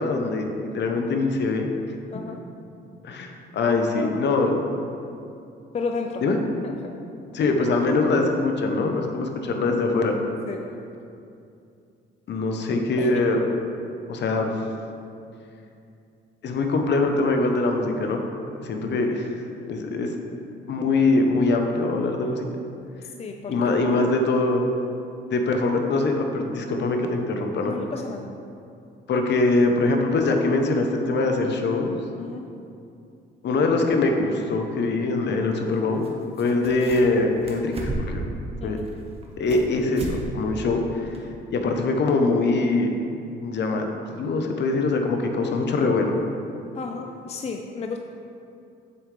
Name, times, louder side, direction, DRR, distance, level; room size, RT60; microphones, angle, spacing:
voice 1, 0.0-1.7 3.0-4.6 6.2-6.4 7.3-10.1 12.3-13.4 14.1-14.5 16.4-18.2 18.6-19.3 19.7-20.1 20.7-22.5 23.5-24.6 25.3-27.8 29.1-31.9 33.4-36.0 36.4-37.7 38.0-38.2 38.6-38.8 39.4-41.1 41.5-42.9 43.4-46.1, left 3 dB, 60° left, 3 dB, 0.9 m, -23 dB
voice 2, 3.7-4.2 5.7-6.2 6.6-6.8 10.5-10.7 13.0-13.2 23.2-23.6 23.9-24.0 27.6-28.3 32.2-32.5 38.6-38.8 46.7-48.0, left 4 dB, 35° left, 3 dB, 0.4 m, -32 dB
sound 1, 36.0-36.1 36.3-37.2 37.5-38.3 38.8-39.7 39.9-40.2 40.5-40.6 41.1-41.2, right 2 dB, 30° right, 1.3 m, -32 dB
7.7 x 6.5 x 3.3 m, 2.6 s
cardioid pair, 90°, 20 cm